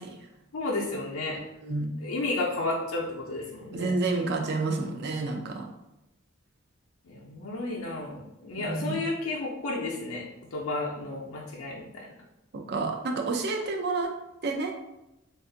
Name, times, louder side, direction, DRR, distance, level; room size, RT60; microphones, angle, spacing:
voice 1, 0.5-1.4 2.0-3.9 7.1-10.2 10.5-12.1, left 2 dB, 70° left, -3 dB, 0.5 m, -32 dB
voice 2, 3.7-5.6 8.6-9.0 12.7-14.1 14.4-14.7, right 3 dB, 50° right, 3 dB, 0.5 m, -29 dB
2.5 x 2.4 x 3.7 m, 0.91 s
head